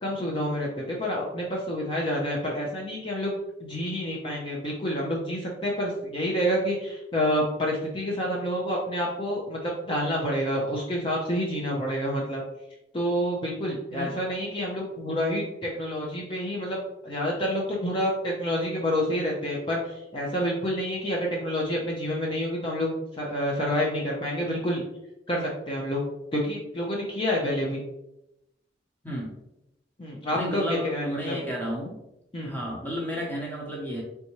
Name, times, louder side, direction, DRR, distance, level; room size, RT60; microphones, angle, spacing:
voice 1, 0.0-12.4 12.9-24.8 25.3-26.0 26.3-27.8 30.0-31.4 32.3-32.5, equal, 30° left, -3 dB, 0.6 m, -28 dB
voice 2, 30.3-32.0 32.4-34.0, equal, 10° left, -2 dB, 1.0 m, -32 dB
4.2 x 3.4 x 3.0 m, 0.87 s
head